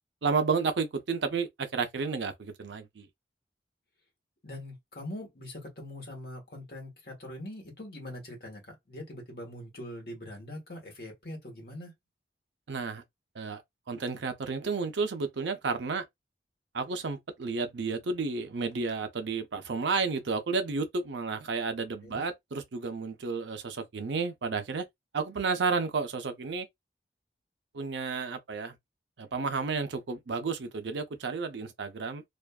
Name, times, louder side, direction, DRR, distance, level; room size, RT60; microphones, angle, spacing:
voice 1, 0.2-3.1 12.7-13.0 13.4-13.6 13.9-16.0 16.7-24.8 25.1-26.7 27.7-28.7 29.2-32.2, right 4 dB, 90° right, 0.6 m, -31 dB
voice 2, 4.4-11.9 22.0-22.2, left 1 dB, 60° left, 1.2 m, -42 dB
2.5 x 2.3 x 2.3 m
head